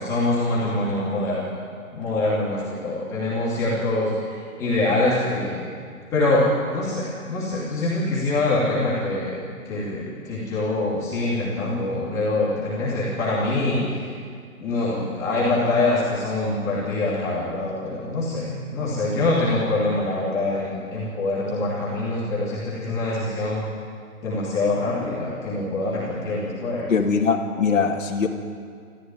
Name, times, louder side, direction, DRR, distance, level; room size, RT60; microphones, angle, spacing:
voice 1, 0.0-1.5 1.9-5.6 6.1-6.5 6.7-14.2 14.6-23.7 24.2-26.9, left 2 dB, 5° left, -8 dB, 2.7 m, -24 dB
voice 2, 26.9-28.3, left 5 dB, 60° left, -1 dB, 2.7 m, -21 dB
26.5 x 14.5 x 9.5 m, 2.1 s
hypercardioid pair, 180°, 43 cm